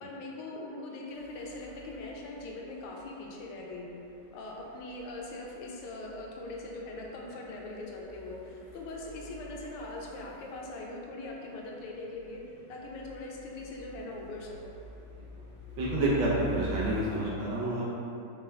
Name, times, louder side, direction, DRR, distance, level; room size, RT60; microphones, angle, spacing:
voice 1, 0.0-4.0 4.3-12.4 12.7-14.7, left 2 dB, 85° left, -1 dB, 1.4 m, -41 dB
sound 1, 1.1-17.2, left 1 dB, 55° left, 1.4 m, -47 dB
voice 2, 15.8-17.8, right 1 dB, 70° right, -7 dB, 1.3 m, -29 dB
4.2 x 2.2 x 3.2 m, 2.7 s
omnidirectional pair, 2.3 m